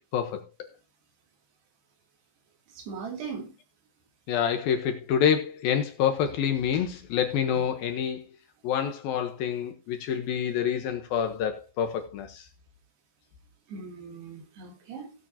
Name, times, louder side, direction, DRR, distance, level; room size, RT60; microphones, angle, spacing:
voice 1, 2.8-3.5 7.5-7.6 13.7-15.1, right 5 dB, 65° right, 4.6 m, -39 dB
voice 2, 4.3-8.2 8.6-12.4, left 8 dB, 70° left, 2.4 m, -27 dB
17.5 x 7.5 x 2.8 m
omnidirectional pair, 5.1 m